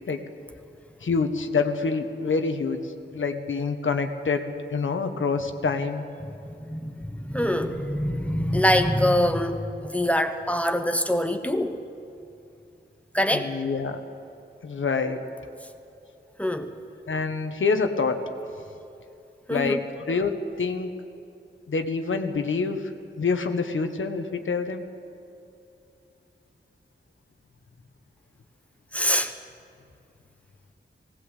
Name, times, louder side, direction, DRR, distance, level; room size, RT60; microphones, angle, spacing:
voice 1, 1.0-6.0 13.3-14.0 14.6-15.2 17.1-18.2 19.5-20.9 21.7-22.9 23.2-24.8, left 4 dB, 80° left, 6 dB, 1.4 m, -26 dB
voice 2, 6.3-11.8 13.1-13.5 16.4-16.8 19.5-19.8 28.9-29.3, equal, 5° left, 7 dB, 1.1 m, -24 dB
18.0 x 18.0 x 8.2 m, 2.7 s
wide cardioid pair, 100°, 20 cm